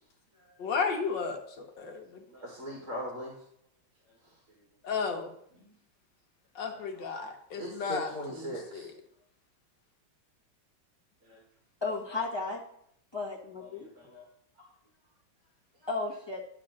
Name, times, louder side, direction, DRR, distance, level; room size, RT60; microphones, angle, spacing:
voice 1, 0.6-1.4 1.8-2.2 4.8-5.3 6.5-8.9, left 5 dB, 65° left, 3 dB, 1.7 m, -33 dB
voice 2, 2.3-3.4 5.6-5.7 6.7-7.1 7.6-8.9 11.3-11.4 13.7-14.2 15.8-15.9, equal, 40° right, -3 dB, 2.1 m, -40 dB
voice 3, 11.8-12.6 13.1-13.9 15.9-16.4, left 3 dB, 15° left, -2 dB, 1.2 m, -34 dB
11.0 x 3.7 x 6.3 m, 0.69 s
omnidirectional pair, 2.2 m